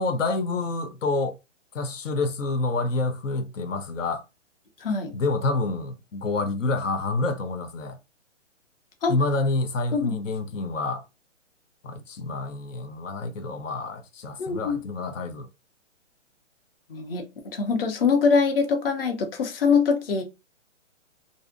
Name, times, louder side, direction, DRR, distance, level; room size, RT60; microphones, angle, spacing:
voice 1, 0.0-1.4 1.7-4.2 5.1-8.0 9.1-11.0 11.8-15.5, left 3 dB, 85° left, 0.7 m, -28 dB
voice 2, 4.8-5.1 9.0-9.2 9.9-10.1 14.4-14.8 16.9-17.3 17.5-20.2, left 5 dB, 50° left, 0.7 m, -23 dB
2.6 x 2.0 x 2.4 m
hypercardioid pair, 160°, 37 cm